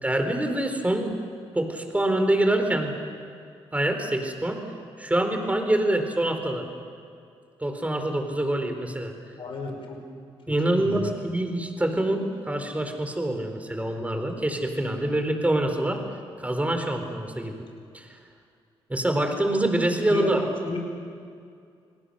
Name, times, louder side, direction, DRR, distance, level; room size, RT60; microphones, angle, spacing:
voice 1, 0.0-1.1 1.5-2.9 3.7-4.6 5.0-6.6 7.6-9.1 10.5-16.0 16.4-17.6 17.9-18.1 18.9-20.4, right 1 dB, 15° right, 5 dB, 4.1 m, -25 dB
voice 2, 9.4-10.0 10.7-11.1 20.1-20.8, left 3 dB, 60° left, 3 dB, 5.3 m, -32 dB
29.0 x 19.5 x 6.6 m, 2.3 s
supercardioid pair, 65°, 11 cm